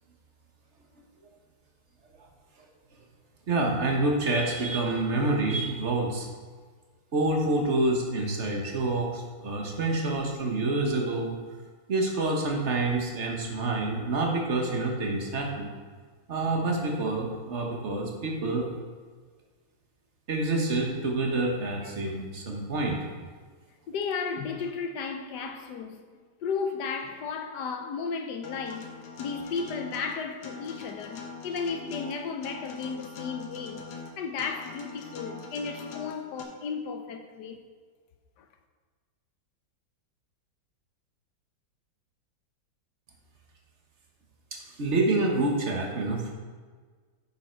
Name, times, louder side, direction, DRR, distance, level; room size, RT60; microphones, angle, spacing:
voice 1, 3.5-6.3 7.1-11.4 11.9-15.7 16.3-18.7 20.3-23.0 44.5-46.3, right 2 dB, 40° right, 1.5 m, -27 dB
voice 2, 23.9-26.0 26.4-28.9 29.2-33.8 34.2-37.6 38.4-38.5, left 5 dB, 65° left, 1.3 m, -34 dB
Acoustic guitar, 28.4-36.4, left 4 dB, 90° left, 1.9 m, -42 dB
9.7 x 7.1 x 4.6 m
omnidirectional pair, 2.1 m